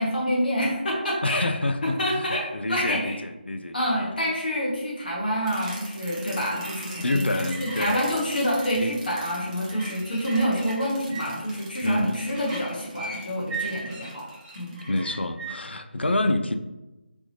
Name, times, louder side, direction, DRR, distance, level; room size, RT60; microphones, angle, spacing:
voice 1, 0.0-1.5 1.8-3.2 3.7-14.3 14.5-14.8, equal, 55° left, -4 dB, 1.3 m, -27 dB
voice 2, 1.2-4.2 7.0-8.2 8.8-8.9 11.8-12.3 14.9-16.6, left 2 dB, 80° left, 8 dB, 0.4 m, -27 dB
sound 1, 5.5-15.5, right 3 dB, 5° right, 0.4 m, -39 dB
4.4 x 3.5 x 2.7 m, 1.0 s
figure-of-eight pair, 160°, 6 cm